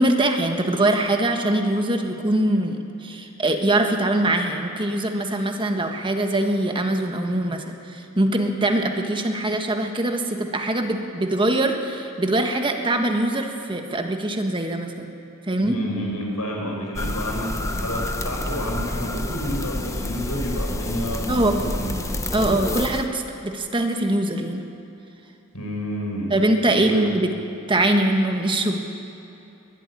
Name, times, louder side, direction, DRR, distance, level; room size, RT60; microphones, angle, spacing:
voice 1, 0.0-15.1 15.4-15.8 21.3-21.6 22.3-24.7 26.3-27.3 27.7-28.8, right 1 dB, 20° right, 4 dB, 1.4 m, -22 dB
voice 2, 15.6-22.0 25.5-26.3 26.8-27.1, equal, 85° left, -1 dB, 5.6 m, -29 dB
sound 1, 17.0-23.1, left 1 dB, 15° left, 0.9 m, -28 dB
21.5 x 13.0 x 9.9 m, 2.9 s
head